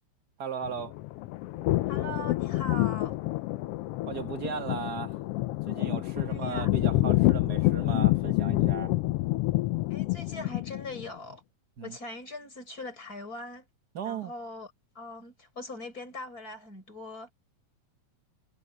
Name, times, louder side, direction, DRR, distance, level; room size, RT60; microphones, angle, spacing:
voice 1, 0.4-0.9 4.1-5.2 5.7-8.9 11.8-12.0 13.9-14.3, right 6 dB, 40° right, 1.7 m, -36 dB
sound 1, 0.6-11.0, left 18 dB, 80° left, 1.3 m, -28 dB
voice 2, 1.9-3.2 6.3-6.7 9.9-11.4 11.8-13.7 14.0-17.3, left 2 dB, 30° left, 6.0 m, -41 dB
omnidirectional pair, 3.3 m